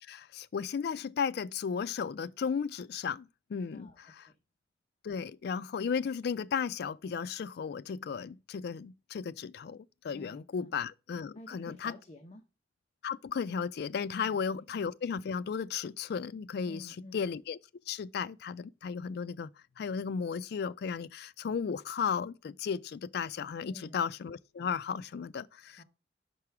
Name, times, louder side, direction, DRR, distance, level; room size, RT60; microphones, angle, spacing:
voice 1, 0.1-4.2 5.0-12.0 13.0-17.6 17.9-19.5 19.8-25.8, left 6 dB, 60° left, 0.3 m, -35 dB
voice 2, 3.7-4.3 10.1-10.8 11.3-12.4 14.2-14.6 16.7-17.2 23.6-24.1 25.8-25.9, left 1 dB, 35° left, 0.8 m, -50 dB
5.6 x 4.8 x 5.9 m
head